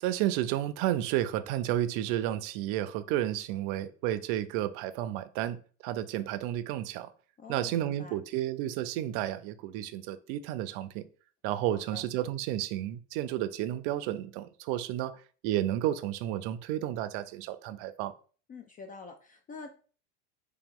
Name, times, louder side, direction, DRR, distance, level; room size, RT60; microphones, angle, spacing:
voice 1, 0.0-7.1 7.5-11.1 11.4-15.2 15.4-18.1, right 13 dB, 60° right, 0.5 m, -32 dB
voice 2, 7.4-8.2 11.7-12.0 18.5-19.7, left 4 dB, 25° left, 0.3 m, -46 dB
3.3 x 3.0 x 3.6 m
supercardioid pair, 115°, 37 cm